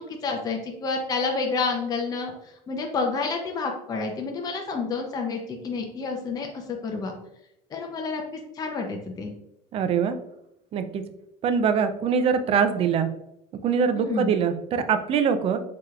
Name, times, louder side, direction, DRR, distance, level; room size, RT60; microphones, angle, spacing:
voice 1, 0.0-7.1 7.7-9.3 13.9-14.3, left 4 dB, 25° left, 2 dB, 0.6 m, -29 dB
voice 2, 9.7-10.2 10.7-11.0 11.4-13.1 13.6-15.6, right 6 dB, 40° right, 9 dB, 0.4 m, -23 dB
4.7 x 2.9 x 2.4 m, 0.81 s
supercardioid pair, 120°, 15 cm